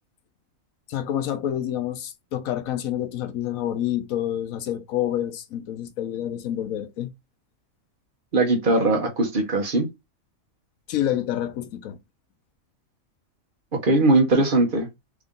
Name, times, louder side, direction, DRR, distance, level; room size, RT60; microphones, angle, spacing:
voice 1, 0.9-7.1 10.9-12.0, left 11 dB, 85° left, 1.1 m, -28 dB
voice 2, 8.3-9.9 13.8-14.9, right 2 dB, 40° right, 1.1 m, -20 dB
3.6 x 2.6 x 3.6 m
omnidirectional pair, 1.4 m